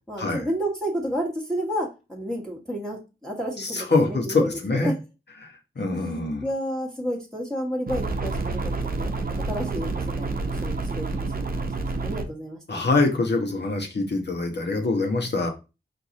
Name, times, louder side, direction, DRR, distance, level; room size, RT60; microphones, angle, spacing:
voice 1, 0.1-4.5 4.8-4.9 6.4-11.7 12.0-12.8, equal, 5° left, 1.5 m, -31 dB
voice 2, 3.6-4.9 5.4-6.5 12.7-15.5, left 3 dB, 55° left, 1.1 m, -24 dB
sound 1, 7.9-12.3, right 3 dB, 45° right, 0.8 m, -28 dB
4.6 x 2.5 x 4.0 m
cardioid pair, 50°, 21 cm